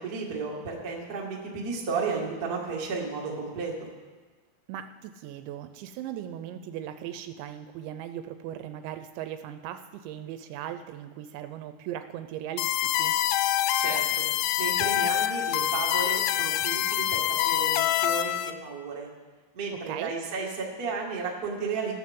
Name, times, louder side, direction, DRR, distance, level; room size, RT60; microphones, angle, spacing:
voice 1, 0.0-3.7 13.8-14.3 14.6-19.1 19.5-21.9, right 4 dB, 55° right, -3 dB, 1.0 m, -33 dB
voice 2, 4.7-13.1 19.9-20.1, right 10 dB, 85° right, 9 dB, 2.7 m, -38 dB
sound 1, 12.6-18.5, left 13 dB, 85° left, 2.9 m, -26 dB
14.5 x 14.0 x 3.7 m, 1.3 s
omnidirectional pair, 5.4 m